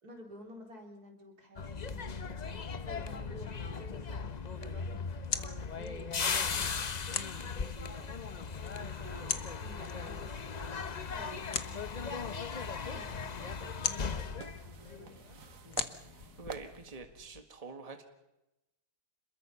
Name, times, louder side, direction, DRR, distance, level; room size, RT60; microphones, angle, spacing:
voice 1, 0.0-8.1 8.7-10.8 11.1-12.4 12.8-15.2 15.6-15.8, right 1 dB, 80° right, 1 dB, 4.7 m, -52 dB
sound 1, 1.6-15.6 15.8-16.1, left 5 dB, 35° left, 0.7 m, -38 dB
sound 2, 4.6-17.4, left 8 dB, 90° left, 1.7 m, -43 dB
sound 3, 12.5-17.0, right 7 dB, 60° right, 1.5 m, -50 dB
voice 2, 16.4-18.0, right 4 dB, 25° right, 6 dB, 1.8 m, -46 dB
27.0 x 21.5 x 5.8 m, 0.94 s
omnidirectional pair, 1.6 m